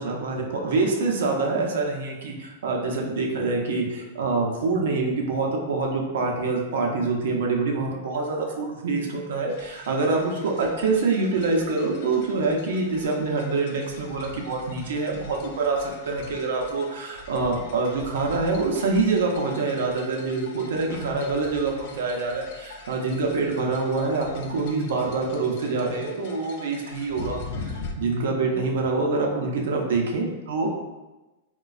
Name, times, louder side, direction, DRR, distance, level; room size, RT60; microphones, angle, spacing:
voice 1, 0.0-30.7, right 3 dB, 80° right, 0 dB, 0.6 m, -26 dB
sound 1, 9.5-27.9, left 4 dB, 55° left, 0.4 m, -42 dB
4.0 x 2.2 x 2.3 m, 1.1 s
supercardioid pair, 150°, 0 cm